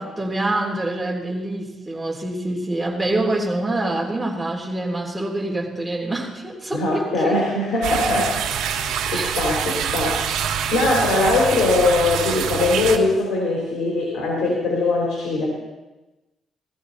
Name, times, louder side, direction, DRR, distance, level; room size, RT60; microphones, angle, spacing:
voice 1, 0.0-7.4 9.1-9.9, right 2 dB, 10° right, -1 dB, 3.3 m, -26 dB
voice 2, 6.7-8.7 9.1-10.4 10.7-15.5, left 2 dB, 70° left, -2 dB, 3.8 m, -21 dB
sound 1, 7.8-13.0, right 8 dB, 80° right, 1.5 m, -25 dB
18.5 x 14.0 x 4.1 m, 1.1 s
cardioid pair, 90°, 0 cm